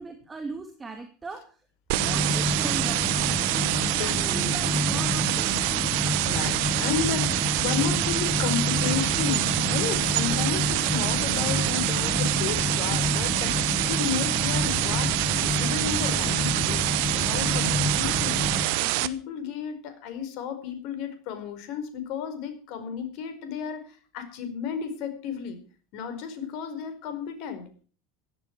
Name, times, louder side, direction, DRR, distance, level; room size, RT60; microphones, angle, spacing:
voice 1, 0.0-1.6 2.0-3.5 3.8-5.7, right 3 dB, 20° right, 5 dB, 2.6 m, -39 dB
sound 1, 1.9-18.7, left 1 dB, 15° left, 3.2 m, -29 dB
sound 2, 1.9-19.1, right 18 dB, 60° right, 1.0 m, -26 dB
voice 2, 3.8-4.8 5.8-5.9 6.2-18.4 18.8-25.6 25.9-27.7, left 7 dB, 55° left, 9 dB, 4.7 m, -33 dB
16.5 x 12.5 x 4.7 m, 0.40 s
figure-of-eight pair, 75°, 0 cm